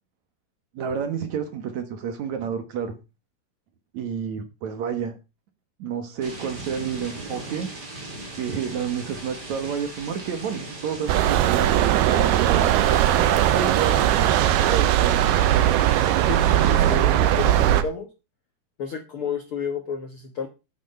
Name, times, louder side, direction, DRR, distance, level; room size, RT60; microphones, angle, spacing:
voice 1, 0.7-3.0 3.9-5.2 5.8-7.7 8.3-12.7 13.5-15.5, right 7 dB, 60° right, 8 dB, 2.3 m, -30 dB
sound 1, 6.2-17.0, right 2 dB, 25° right, 3.7 m, -39 dB
sound 2, 11.1-17.8, right 12 dB, 90° right, 2.9 m, -19 dB
voice 2, 16.3-18.1 18.8-20.5, left 6 dB, 80° left, 6 dB, 1.2 m, -31 dB
9.8 x 9.3 x 5.4 m, 0.28 s
omnidirectional pair, 4.5 m